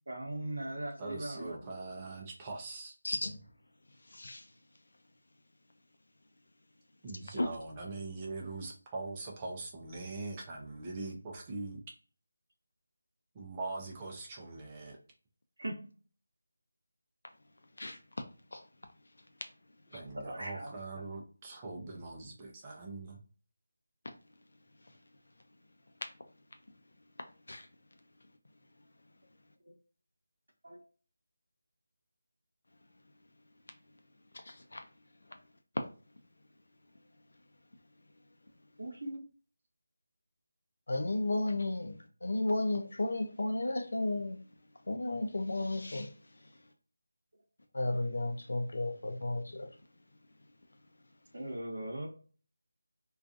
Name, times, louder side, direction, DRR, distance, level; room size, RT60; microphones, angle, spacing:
voice 1, 0.1-1.7 15.6-15.9 20.2-20.7 30.6-30.8 38.8-39.2 51.3-52.1, right 1 dB, 70° right, 0.7 m, -39 dB
voice 2, 1.0-2.9 7.0-11.8 13.4-15.0 19.9-23.2, right 3 dB, 15° right, 0.4 m, -42 dB
voice 3, 3.0-3.4 4.1-4.4 7.3-7.5 17.8-18.0 18.5-18.6 19.9-20.0 27.5-27.7 34.5-34.8 40.9-42.0 42.2-44.4 44.9-46.1 47.7-49.7, left 2 dB, 70° left, 0.5 m, -33 dB
2.4 x 2.3 x 2.4 m
figure-of-eight pair, 170°, 0 cm